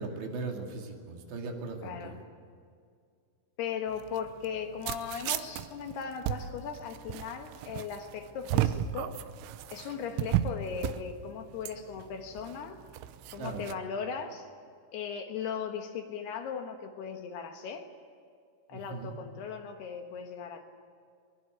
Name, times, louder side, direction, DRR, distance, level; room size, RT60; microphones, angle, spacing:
voice 1, 0.0-2.2 13.4-13.6 18.7-19.1, right 3 dB, 70° right, 2 dB, 4.5 m, -38 dB
voice 2, 1.8-2.2 3.6-9.2 9.7-12.8 13.3-14.5 14.9-17.9 18.7-20.6, left 7 dB, 70° left, 5 dB, 3.1 m, -38 dB
sound 1, 3.9-13.7, right 12 dB, 90° right, 3.3 m, -34 dB
23.0 x 22.5 x 8.1 m, 2.2 s
omnidirectional pair, 5.4 m